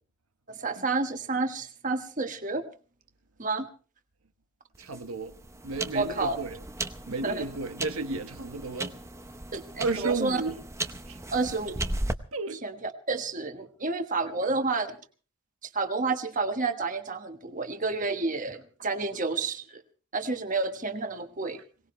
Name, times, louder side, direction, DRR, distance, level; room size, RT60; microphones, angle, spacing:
voice 1, 0.5-2.6 3.4-3.7 5.9-6.4 7.2-7.5 9.5-10.4 11.3-11.8 12.6-15.0 15.7-19.8 20.1-21.6, right 3 dB, 35° right, 1.3 m, -30 dB
sound 1, 4.7-12.1, right 2 dB, 15° right, 0.7 m, -37 dB
voice 2, 4.8-5.4 5.6-6.6 7.1-8.9 9.8-10.6 11.1-11.2 12.3-12.6, right 3 dB, 85° right, 1.3 m, -33 dB
22.5 x 18.5 x 3.2 m
head